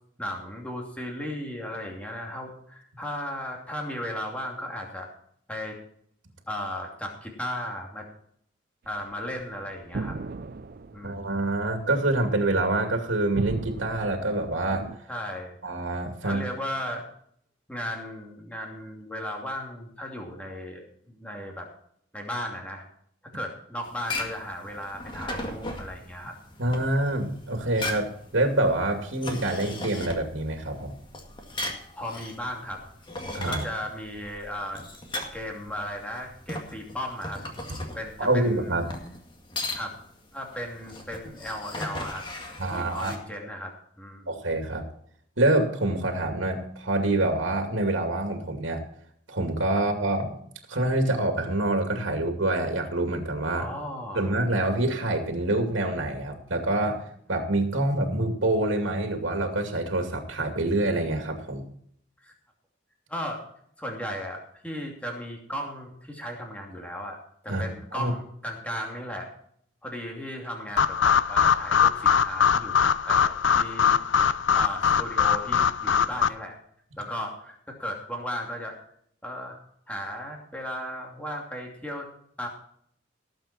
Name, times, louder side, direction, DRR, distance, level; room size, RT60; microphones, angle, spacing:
voice 1, 0.2-5.1 5.5-5.8 6.5-8.1 8.9-10.2 10.9-11.4 15.1-15.6 16.2-17.1 17.7-21.7 22.1-22.8 23.3-26.4 26.8-26.9 31.9-32.8 33.5-34.8 35.3-37.4 37.9-38.7 39.7-39.9 40.3-42.3 42.7-44.3 53.5-54.4 62.2-62.3 63.1-63.4 63.8-67.2 67.4-69.3 69.8-74.3 74.5-76.6 77.0-78.8 79.2-79.6 79.9-82.1 82.4-82.5, equal, 5° left, 0 dB, 2.7 m, -36 dB
sound 1, 8.8-15.0, right 3 dB, 50° right, 0.5 m, -37 dB
voice 2, 11.0-14.9 15.6-16.4 26.6-30.9 33.3-33.6 38.2-38.9 42.6-43.1 44.3-44.8 45.4-48.8 49.3-50.4 50.7-53.7 54.1-61.7 67.5-67.6 67.9-68.1, right 2 dB, 80° right, 5 dB, 2.4 m, -26 dB
sound 2, 23.8-43.2, left 2 dB, 25° left, 2.0 m, -38 dB
sound 3, 70.8-76.3, left 7 dB, 70° left, 0.6 m, -22 dB
18.5 x 7.8 x 4.3 m, 0.66 s
head